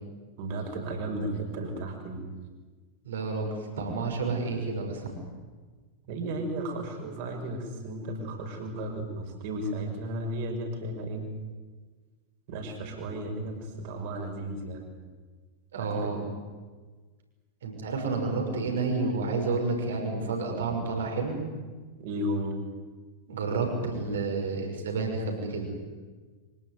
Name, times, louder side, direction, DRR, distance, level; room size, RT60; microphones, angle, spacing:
voice 1, 0.4-2.2 6.1-11.3 12.5-14.9 15.8-16.2 22.0-22.5, right 1 dB, 50° right, 4 dB, 5.9 m, -34 dB
voice 2, 3.0-5.1 15.7-16.2 17.6-21.4 23.3-25.7, right 3 dB, 65° right, 2 dB, 6.4 m, -30 dB
25.0 x 18.0 x 9.5 m, 1.4 s
figure-of-eight pair, 90°, 0 cm